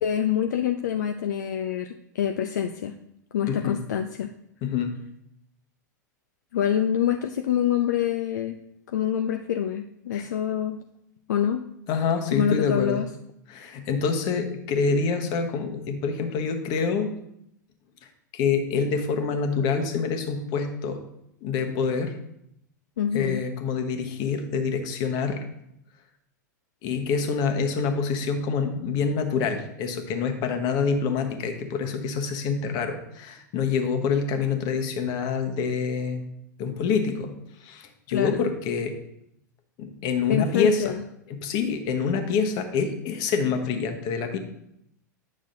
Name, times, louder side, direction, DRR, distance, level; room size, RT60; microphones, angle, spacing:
voice 1, 0.0-2.9 3.3-4.3 6.5-8.6 8.9-10.8 11.3-11.6 12.3-13.1 23.0-23.4 38.1-38.4 40.3-41.0, left 9 dB, 65° left, 6 dB, 0.4 m, -26 dB
voice 2, 3.5-3.8 4.6-4.9 10.1-10.3 11.9-13.0 13.5-17.1 18.3-21.0 21.4-22.2 23.1-25.4 26.8-36.2 36.6-37.3 37.6-39.0 39.8-40.8 41.3-44.4, left 5 dB, 45° left, 6 dB, 1.1 m, -26 dB
9.6 x 6.2 x 2.6 m, 0.78 s
figure-of-eight pair, 90°, 10 cm